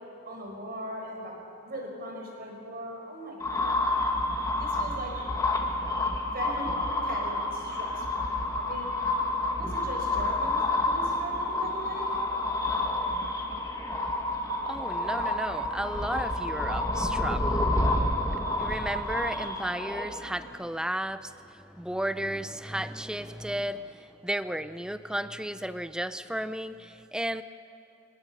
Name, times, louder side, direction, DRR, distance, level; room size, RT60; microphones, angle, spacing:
voice 1, 0.2-1.3 1.6-3.9 4.6-5.2 6.3-6.7 7.0-8.9 9.6-12.2, right 1 dB, 50° right, 0 dB, 5.0 m, -39 dB
sound 1, 3.4-20.5, left 2 dB, 15° left, 1.9 m, -29 dB
voice 2, 14.6-17.7 18.6-27.4, right 1 dB, 5° right, 12 dB, 0.5 m, -34 dB
25.5 x 20.5 x 5.5 m, 2.9 s
head